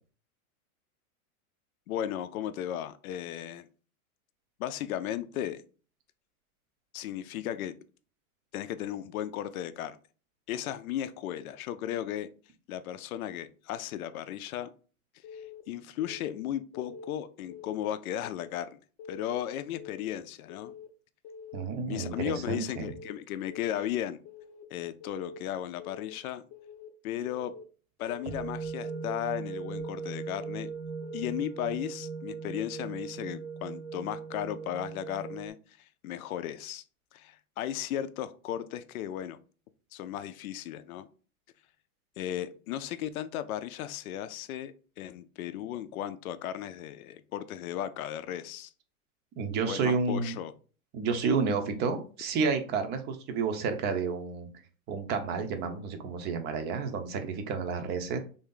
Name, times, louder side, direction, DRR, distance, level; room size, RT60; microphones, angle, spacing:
voice 1, 1.9-3.7 4.6-5.6 6.9-7.8 8.5-10.0 10.5-12.3 12.7-14.7 15.3-18.8 19.1-20.7 21.8-24.2 24.7-26.4 27.0-27.5 28.0-30.7 31.1-36.8 37.1-39.4 39.9-41.1 42.2-48.7 49.6-50.5, left 11 dB, 80° left, 11 dB, 0.5 m, -35 dB
Keyboard (musical) / Alarm, 15.2-15.6 16.0-16.4 16.7-17.1 17.5-17.9 18.2-18.6 19.0-19.4 19.7-20.1 20.5-20.9 21.2-21.6 22.0-22.4 22.7-23.1 23.5-23.9 24.3-24.6 25.0-25.4 25.8-26.1 26.5-26.9 27.3-27.6 28.0-28.4 28.8-29.1 29.5-29.9 30.3-30.7 31.0-31.4, left 6 dB, 35° left, 0.7 m, -46 dB
voice 2, 21.5-22.9 49.4-50.4 50.9-54.5 54.9-58.2, right 5 dB, 25° right, 7 dB, 0.5 m, -30 dB
sound 1, 28.3-35.5, right 5 dB, 70° right, 1.0 m, -39 dB
3.3 x 2.6 x 3.7 m, 0.38 s
hypercardioid pair, 125°, 43 cm